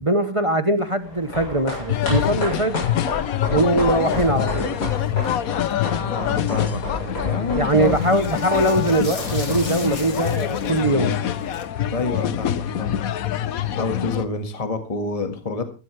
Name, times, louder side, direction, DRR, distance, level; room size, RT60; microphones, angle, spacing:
voice 1, 0.0-2.8 3.5-4.8 7.5-11.2, right 1 dB, 25° right, 0.8 m, -21 dB
sound 1, 0.8-5.8 6.3-7.3 7.6-11.6, left 4 dB, 45° left, 2.1 m, -39 dB
sound 2, 1.0-11.6 11.8-11.9, left 1 dB, 80° left, 7.9 m, -33 dB
sound 3, 1.9-14.3, left 10 dB, 60° left, 1.2 m, -25 dB
voice 2, 3.8-4.2 6.0-7.9 11.9-13.0 13.7-15.6, left 3 dB, 20° left, 1.7 m, -28 dB
15.5 x 15.0 x 3.3 m
omnidirectional pair, 1.8 m